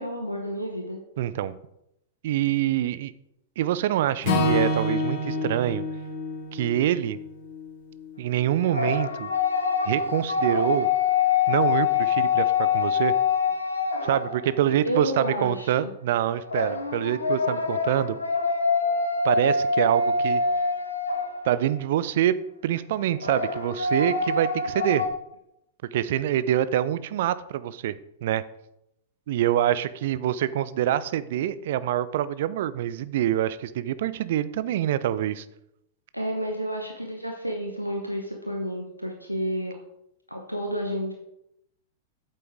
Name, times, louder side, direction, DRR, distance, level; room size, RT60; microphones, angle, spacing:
voice 1, 0.0-1.0 14.6-15.9 17.5-17.6 36.1-39.8 40.3-41.1, equal, 90° right, 1 dB, 1.0 m, -31 dB
voice 2, 1.2-1.5 2.2-3.1 3.6-5.8 6.5-7.2 8.2-9.3 9.9-10.9 11.5-13.1 14.0-18.2 19.2-20.4 21.4-22.4 22.6-25.0 25.9-27.9 28.2-28.4 29.3-35.5, right 11 dB, 50° right, 16 dB, 0.5 m, -25 dB
Acoustic guitar / Strum, 4.2-8.5, left 2 dB, 45° left, 2.3 m, -28 dB
sound 1, 8.6-14.7 16.5-21.8 23.2-25.1, left 5 dB, 75° left, 1.2 m, -25 dB
9.0 x 7.7 x 3.6 m, 0.81 s
figure-of-eight pair, 100°, 0 cm